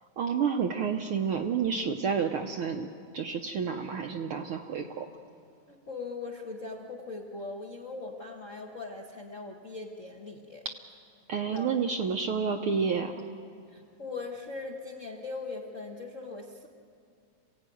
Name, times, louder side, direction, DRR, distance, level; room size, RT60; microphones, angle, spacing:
voice 1, 0.2-2.9 3.1-5.1 11.3-13.1, right 6 dB, 70° right, 4 dB, 1.3 m, -29 dB
voice 2, 5.7-10.6 11.5-11.8 13.7-16.7, left 3 dB, 50° left, -1 dB, 0.9 m, -40 dB
27.5 x 16.5 x 9.2 m, 2.4 s
omnidirectional pair, 3.3 m